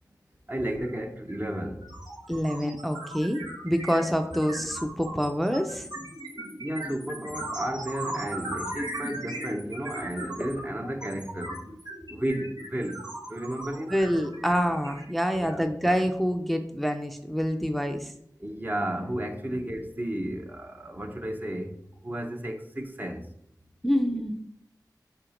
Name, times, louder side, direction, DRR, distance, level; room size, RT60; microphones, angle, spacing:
voice 1, 0.5-1.8 6.6-11.5 12.1-13.0 13.3-13.9 15.4-15.6 18.4-21.7 22.0-23.2, right 1 dB, 25° right, 0.9 m, -33 dB
sound 1, 0.8-1.0 1.3-15.6, right 1 dB, 75° right, 1.7 m, -38 dB
voice 2, 2.3-5.9 13.9-18.1 23.8-24.4, equal, ahead, 0.6 m, -26 dB
5.0 x 4.5 x 5.1 m
wide cardioid pair, 65°, 7 cm